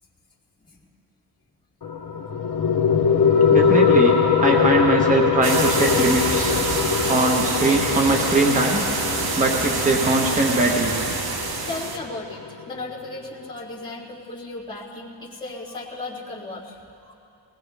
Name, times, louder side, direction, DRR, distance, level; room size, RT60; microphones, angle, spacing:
sound 1, 1.8-12.8, left 6 dB, 55° left, 1.0 m, -22 dB
voice 1, 3.5-6.5 7.1-8.9 9.4-10.9, right 2 dB, 15° right, 0 dB, 1.2 m, -21 dB
sound 2, 5.4-12.0, right 4 dB, 55° right, 1.2 m, -26 dB
voice 2, 6.4-7.1 11.6-17.1, left 2 dB, 10° left, -9 dB, 2.6 m, -36 dB
20.5 x 18.0 x 3.5 m, 2.6 s
wide cardioid pair, 135°, 45 cm